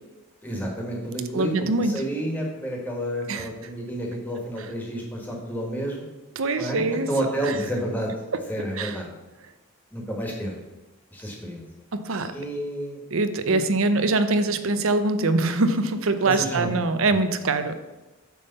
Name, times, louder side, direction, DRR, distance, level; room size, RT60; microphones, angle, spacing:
voice 1, 0.4-1.5 1.8-6.1 6.5-8.1 8.5-9.1 9.9-10.5 11.1-11.6 12.3-13.0 13.5-13.6 16.2-16.7, right 1 dB, 10° left, -1 dB, 1.6 m, -30 dB
voice 2, 1.3-2.0 3.3-3.5 6.4-7.1 7.4-7.6 8.3-8.4 8.8-9.0 11.9-12.4 13.1-17.8, right 3 dB, 70° right, 10 dB, 0.6 m, -23 dB
9.4 x 3.6 x 6.7 m, 1.1 s
head